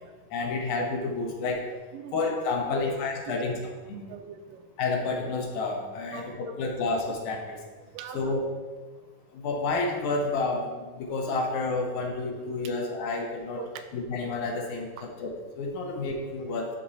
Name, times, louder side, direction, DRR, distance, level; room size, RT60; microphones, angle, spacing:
voice 1, 0.3-1.6 2.1-3.6 3.9-4.1 4.8-7.6 8.1-8.4 9.3-13.6 13.9-16.7, left 3 dB, 70° left, 1 dB, 2.2 m, -30 dB
voice 2, 1.9-2.9 3.3-3.6 3.9-4.6 6.1-6.7 7.8-8.3 13.6-14.0, right 8 dB, 85° right, 7 dB, 2.2 m, -42 dB
11.5 x 4.3 x 4.1 m, 1.4 s
omnidirectional pair, 3.8 m